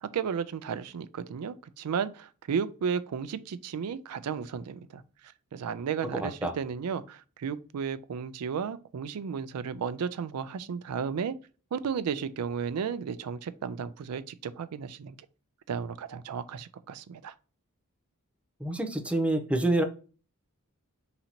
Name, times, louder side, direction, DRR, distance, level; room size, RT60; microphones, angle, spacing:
voice 1, 0.0-11.3 11.7-15.2 15.7-17.3, right 6 dB, 90° right, 0.4 m, -34 dB
voice 2, 6.2-6.5 18.6-19.8, right 1 dB, 5° right, 0.6 m, -27 dB
3.9 x 2.9 x 4.2 m
head